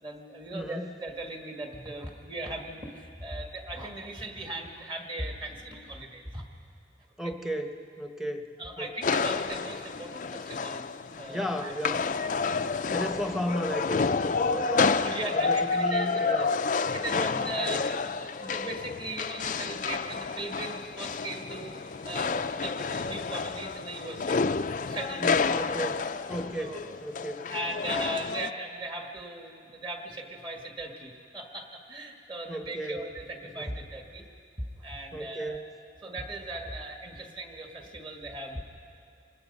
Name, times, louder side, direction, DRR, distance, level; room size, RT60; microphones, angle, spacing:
voice 1, 0.0-6.4 8.6-10.9 11.2-12.0 15.0-16.5 16.9-24.4 24.8-25.4 26.6-26.9 27.5-34.3 34.8-35.6 36.0-38.6, right 1 dB, 25° right, 2 dB, 1.7 m, -38 dB
voice 2, 0.5-0.9 7.2-8.9 11.3-12.1 12.9-14.9 15.3-16.5 17.1-17.3 17.6-17.8 25.2-27.5 32.5-33.0 33.6-33.7 35.1-35.7, equal, ahead, 5 dB, 0.9 m, -35 dB
sound 1, 9.0-28.5, left 4 dB, 40° left, 0.4 m, -30 dB
26.0 x 19.5 x 5.4 m, 2.5 s
head